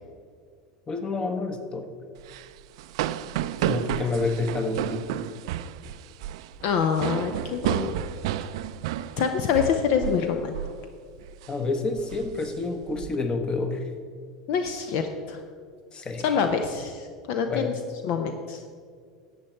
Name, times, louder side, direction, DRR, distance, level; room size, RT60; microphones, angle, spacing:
voice 1, 0.9-1.8 3.7-5.0 11.5-13.8 15.9-16.2 17.5-17.7, left 3 dB, 30° left, 7 dB, 1.3 m, -28 dB
sound 1, 2.2-10.3 10.5-10.8 11.2-11.5 12.0-13.1, right 12 dB, 65° right, 0.4 m, -31 dB
voice 2, 6.6-7.9 9.2-10.5 14.5-15.4 16.2-17.7 18.0-18.6, left 7 dB, 60° left, 6 dB, 0.7 m, -26 dB
11.5 x 8.0 x 4.4 m, 2.1 s
hypercardioid pair, 80°, 3 cm